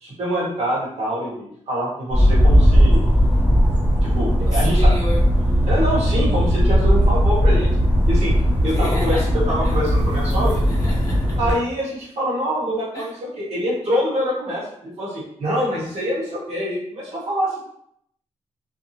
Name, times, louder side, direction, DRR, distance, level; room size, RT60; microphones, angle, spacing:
voice 1, 0.0-3.0 4.0-4.9 5.7-7.7 8.1-8.3 8.6-10.5 11.4-17.6, equal, 60° right, -6 dB, 1.1 m, -25 dB
sound 1, 2.1-11.5, equal, 10° right, 0.6 m, -17 dB
voice 2, 4.5-5.2 8.7-9.2 9.6-9.7 10.7-11.4 12.9-13.1, equal, 25° left, -6 dB, 0.9 m, -31 dB
2.6 x 2.0 x 2.7 m, 0.70 s
wide cardioid pair, 145°, 12 cm